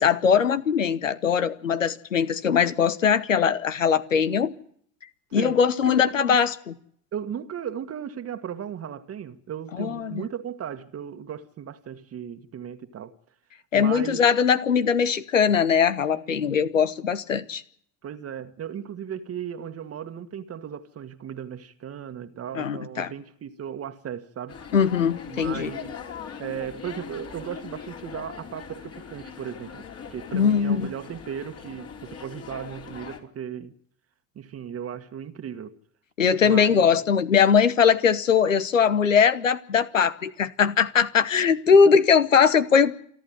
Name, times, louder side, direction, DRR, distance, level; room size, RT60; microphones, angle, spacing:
voice 1, 0.0-4.5 5.3-6.7 9.8-10.2 13.7-17.6 22.5-23.1 24.7-25.7 30.3-30.9 36.2-43.0, left 6 dB, 85° left, 1.1 m, -21 dB
voice 2, 5.3-6.4 7.1-13.1 13.7-14.2 16.1-16.6 18.0-24.6 25.3-26.0 26.4-29.8 30.1-33.7 34.3-35.8 36.4-36.9 41.7-41.9, right 8 dB, 40° right, 1.6 m, -36 dB
sound 1, 24.5-33.2, left 6 dB, 40° left, 3.7 m, -41 dB
28.5 x 11.5 x 9.2 m
figure-of-eight pair, 60°, 38 cm